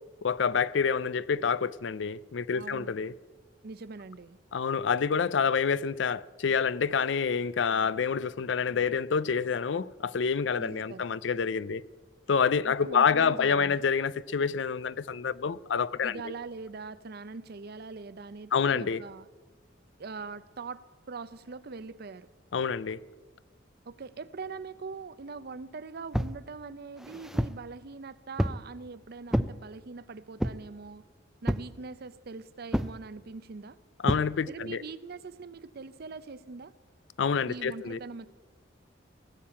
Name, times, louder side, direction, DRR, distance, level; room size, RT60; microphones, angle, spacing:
voice 1, 0.2-3.1 4.5-11.8 12.3-16.2 18.5-19.0 22.5-23.0 34.0-34.8 37.2-38.0, left 6 dB, 70° left, 0.5 m, -27 dB
voice 2, 2.5-2.9 3.6-4.4 10.6-11.1 12.6-13.8 16.0-19.3 20.0-22.3 23.9-31.0 31.4-33.8 34.5-36.7 37.5-38.3, right 4 dB, 55° right, 0.6 m, -42 dB
sound 1, 26.1-26.4 27.0-27.6 28.4-28.7 29.3-29.6 30.4-30.7 31.5-31.8 32.7-33.0 34.1-34.3, equal, ahead, 0.4 m, -29 dB
18.5 x 7.5 x 8.6 m
head